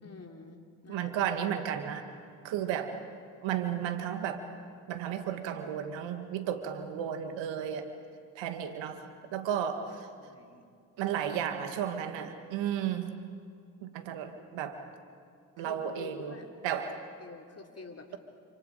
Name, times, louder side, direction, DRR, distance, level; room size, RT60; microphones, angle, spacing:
voice 1, 0.0-1.1 10.2-10.6 15.6-16.5 17.2-18.2, left 3 dB, 30° left, 3 dB, 3.5 m, -48 dB
voice 2, 0.9-2.1 2.4-3.0 3.4-4.5 4.9-7.9 8.3-10.1 11.0-13.2 13.8-14.8 15.6-16.4 16.6-17.0, right 9 dB, 70° right, 8 dB, 1.8 m, -33 dB
28.5 x 27.0 x 5.0 m, 2.2 s
hypercardioid pair, 45°, 46 cm